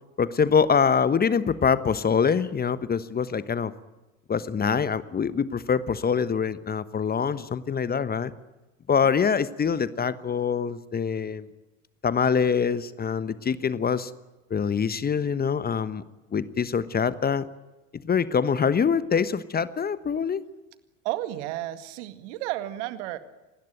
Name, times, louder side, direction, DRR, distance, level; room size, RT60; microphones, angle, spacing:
voice 1, 0.2-3.7 4.3-8.3 8.9-11.5 12.0-14.1 14.5-16.0 16.3-17.5 17.9-20.4, left 6 dB, 25° left, 15 dB, 1.2 m, -24 dB
voice 2, 21.0-23.2, right 15 dB, 60° right, 11 dB, 2.0 m, -32 dB
27.0 x 20.0 x 9.2 m, 1.1 s
figure-of-eight pair, 65°, 40 cm